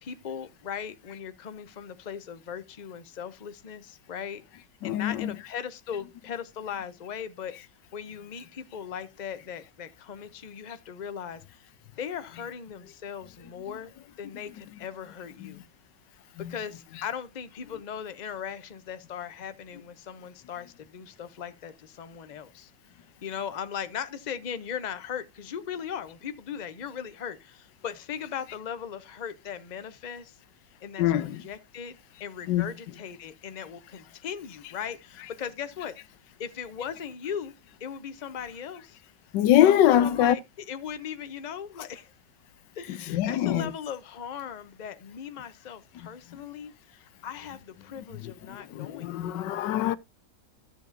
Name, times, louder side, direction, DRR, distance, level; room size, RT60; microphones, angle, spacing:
voice 1, 0.0-4.4 4.8-7.5 7.9-11.7 12.0-13.9 14.2-15.6 16.5-22.7 23.2-30.4 30.8-35.9 36.4-37.5 37.8-39.0 39.5-40.4 40.7-42.1 42.8-49.4, left 8 dB, 55° left, 0.4 m, -38 dB
voice 2, 4.8-5.4 13.7-13.8 14.4-14.7 15.4-15.6 16.4-16.6 17.7-17.8 31.0-31.5 32.4-33.0 39.3-40.4 42.9-43.7 45.9-46.1 48.0-50.0, left 11 dB, 85° left, 1.3 m, -25 dB
13.0 x 7.3 x 2.6 m
omnidirectional pair, 1.9 m